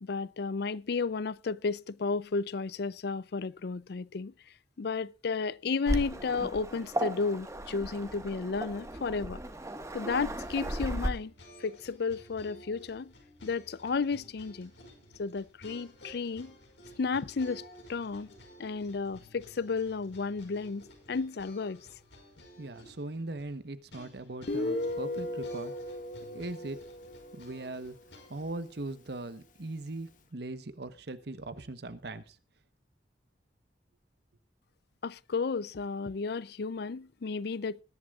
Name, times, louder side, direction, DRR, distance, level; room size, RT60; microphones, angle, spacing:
voice 1, 0.0-4.3 4.8-9.4 9.9-11.3 11.6-13.1 13.4-14.7 15.2-16.5 17.0-17.6 17.9-18.3 18.6-21.9 35.0-37.8, left 4 dB, 65° left, 0.5 m, -33 dB
Waves surf, 5.9-11.1, right 1 dB, 20° right, 1.5 m, -36 dB
sound 1, 10.4-28.5, equal, 80° left, 5.4 m, -53 dB
voice 2, 22.6-25.7 26.3-26.8 27.3-28.0 28.3-32.4, right 2 dB, 70° right, 1.1 m, -40 dB
Guitar, 24.5-28.0, left 1 dB, 50° left, 1.4 m, -36 dB
20.5 x 11.0 x 2.4 m
head